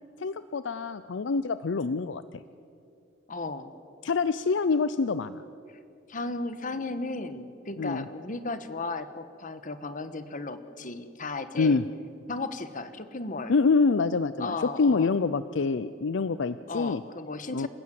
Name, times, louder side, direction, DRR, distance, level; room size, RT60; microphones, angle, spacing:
voice 1, 0.2-2.2 4.0-5.4 7.8-8.1 11.6-11.8 13.5-17.0 17.5-17.7, left 4 dB, 70° left, 14 dB, 0.5 m, -26 dB
voice 2, 3.3-3.7 6.1-11.8 12.3-13.5 14.4-15.1 16.7-17.7, left 3 dB, 45° left, 11 dB, 1.2 m, -35 dB
28.0 x 16.0 x 7.6 m, 2.6 s
head